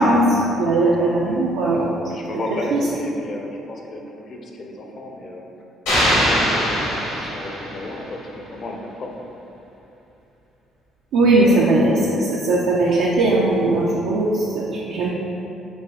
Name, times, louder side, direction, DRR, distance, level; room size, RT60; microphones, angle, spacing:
voice 1, 0.0-1.9 2.7-2.8 11.1-15.1, right 2 dB, 70° right, -4 dB, 0.3 m, -18 dB
voice 2, 2.1-5.5 6.1-9.1, left 1 dB, 50° left, 1 dB, 0.5 m, -33 dB
sound 1, 5.9-8.0, equal, 85° left, 1.2 m, -21 dB
4.2 x 3.1 x 2.3 m, 2.9 s
hypercardioid pair, 50°, 0 cm